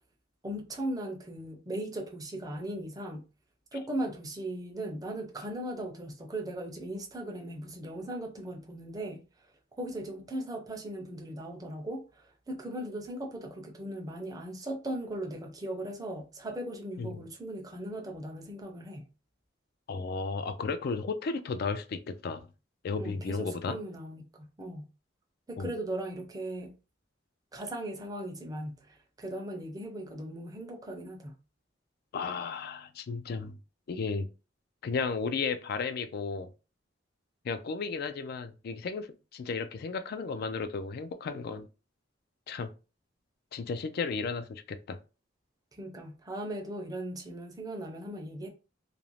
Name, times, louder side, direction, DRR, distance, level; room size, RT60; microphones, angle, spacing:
voice 1, 0.4-3.3 3.7-9.2 9.8-19.1 23.0-24.9 25.5-26.7 27.5-31.4 45.7-48.5, right 1 dB, 20° right, 0.5 m, -38 dB
voice 2, 19.9-22.5 22.8-23.8 25.6-25.7 32.1-33.6 33.9-34.3 34.8-36.5 37.4-41.7 42.5-42.7 43.5-45.0, left 4 dB, 55° left, 0.3 m, -34 dB
2.5 x 2.0 x 3.0 m
head